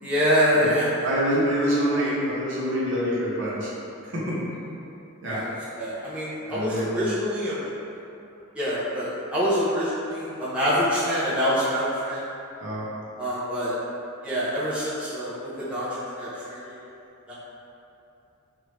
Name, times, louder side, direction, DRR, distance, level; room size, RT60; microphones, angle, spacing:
voice 1, 0.0-1.1 1.9-2.1 5.3-5.5 5.8-7.6 8.6-12.2 13.2-13.8 14.2-15.9 16.2-16.8 17.3-17.4, equal, 5° right, -11 dB, 0.5 m, -25 dB
voice 2, 1.0-3.7 4.0-4.4 5.2-5.4 6.5-7.1 12.6-12.9, equal, 55° right, -7 dB, 0.7 m, -26 dB
3.0 x 2.4 x 3.1 m, 2.7 s
head